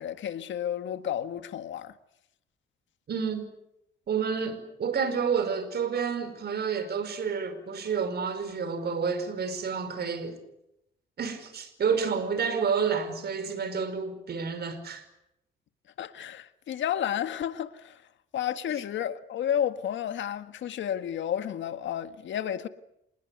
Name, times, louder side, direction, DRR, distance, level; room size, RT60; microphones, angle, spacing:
voice 1, 0.0-1.9 16.0-18.0 18.3-22.7, left 10 dB, 70° left, 1.8 m, -31 dB
voice 2, 3.1-3.4 4.1-10.4 11.2-15.1, right 6 dB, 55° right, 5.3 m, -29 dB
26.5 x 20.0 x 9.5 m
cardioid pair, 90°, 20 cm